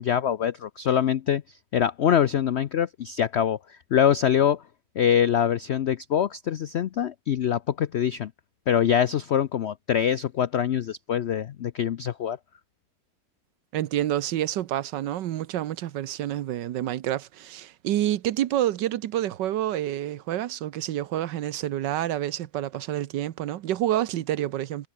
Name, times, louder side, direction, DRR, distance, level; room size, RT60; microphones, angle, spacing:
voice 1, 0.0-4.6 5.0-8.3 8.7-12.4, left 9 dB, 80° left, 0.6 m, -24 dB
voice 2, 13.7-24.9, right 12 dB, 80° right, 1.5 m, -28 dB
omnidirectional pair, 1.9 m